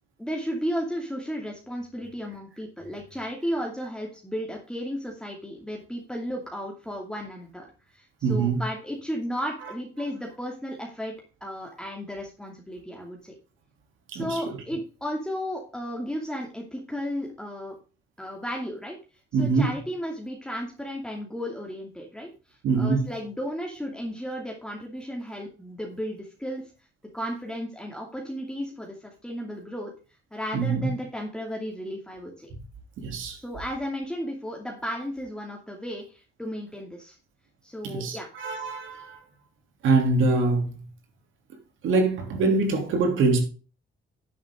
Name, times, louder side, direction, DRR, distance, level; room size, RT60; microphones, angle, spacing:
voice 1, 0.2-7.7 7.9-11.1 11.4-13.3 14.1-17.8 18.2-19.0 19.4-26.6 27.1-29.9 30.3-32.5 33.4-37.2 37.6-38.3, equal, 5° left, 2.6 m, -34 dB
voice 2, 8.2-8.6 14.1-14.6 19.3-19.8 22.6-23.1 30.5-30.9 33.0-33.4 37.8-39.2 39.8-40.8 41.8-43.4, right 3 dB, 80° right, 3.2 m, -24 dB
10.0 x 8.5 x 3.8 m
cardioid pair, 90°, 20 cm